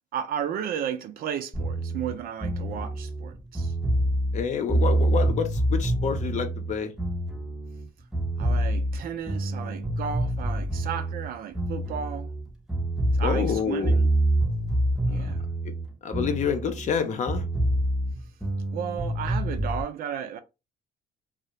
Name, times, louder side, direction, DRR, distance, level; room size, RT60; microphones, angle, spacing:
voice 1, 0.1-3.7 8.4-12.3 13.1-14.1 15.1-15.5 18.7-20.4, right 8 dB, 60° right, 0.5 m, -34 dB
sound 1, 1.5-7.8 8.1-12.4 12.7-17.0 17.3-19.8, right 1 dB, 5° right, 0.6 m, -26 dB
voice 2, 4.3-6.9 13.2-13.9 16.0-17.4, left 7 dB, 45° left, 0.6 m, -28 dB
2.3 x 2.1 x 2.9 m
cardioid pair, 110°, 17 cm